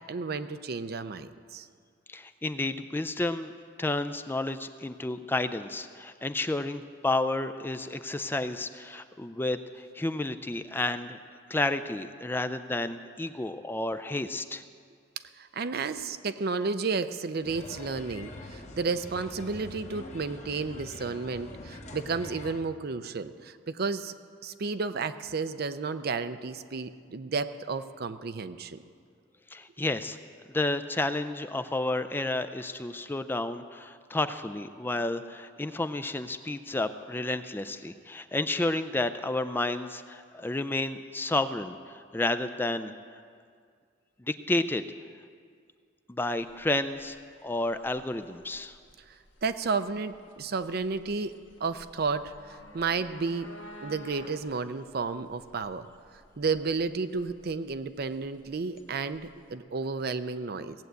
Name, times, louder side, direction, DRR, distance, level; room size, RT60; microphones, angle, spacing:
voice 1, 0.0-1.7 15.4-24.1 24.4-28.8 49.4-53.5 53.8-55.9 56.4-60.7, right 4 dB, 55° right, 11 dB, 0.6 m, -32 dB
voice 2, 2.1-3.5 3.8-11.2 11.5-14.6 29.5-30.2 30.5-43.2 44.2-44.8 46.1-47.2 47.4-48.8, left 2 dB, 10° left, 10 dB, 0.4 m, -31 dB
sound 1, 17.4-22.6, left 2 dB, 40° left, 1.1 m, -44 dB
sound 2, 46.4-59.5, equal, 85° left, 1.6 m, -52 dB
18.0 x 7.7 x 8.2 m, 2.1 s
head